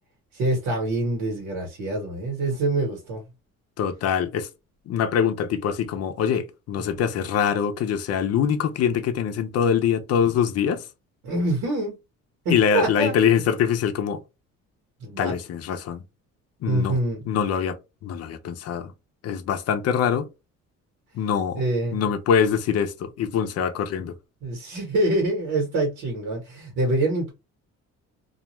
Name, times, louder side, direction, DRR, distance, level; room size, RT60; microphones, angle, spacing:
voice 1, 0.3-3.3 6.8-6.9 11.2-11.9 12.4-13.2 15.0-15.3 16.7-17.2 21.6-22.0 24.4-27.3, right 2 dB, 85° right, 1.2 m, -25 dB
voice 2, 3.8-4.5 4.9-10.8 12.5-14.2 15.2-16.0 16.6-17.0 17.3-17.8 18.0-18.9 19.2-20.3 21.1-21.6 21.9-24.1, left 8 dB, 55° left, 0.6 m, -24 dB
2.4 x 2.2 x 3.0 m
cardioid pair, 130°, 30 cm